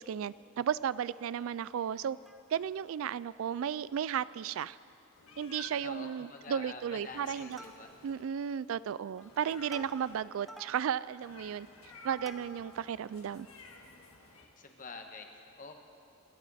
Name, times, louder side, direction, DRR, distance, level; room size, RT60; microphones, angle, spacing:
voice 1, 0.0-2.2 2.5-4.8 5.4-7.6 8.0-11.7 12.0-13.5, right 8 dB, 70° right, 18 dB, 0.3 m, -34 dB
Plucked string instrument, 2.0-2.8 3.3-3.4 3.6-3.8 4.3-4.9 5.3-5.4 5.7-6.1 6.4-6.8 7.2-8.2 8.8-12.9 13.4-13.5, equal, ahead, 0.6 m, -54 dB
Meow, 5.1-5.9 6.9-8.2 9.2-10.2 11.2-14.5, left 2 dB, 80° left, 1.7 m, -53 dB
voice 2, 5.8-7.9 14.6-15.7, left 4 dB, 40° left, 4 dB, 1.3 m, -47 dB
27.0 x 12.5 x 4.2 m, 2.5 s
head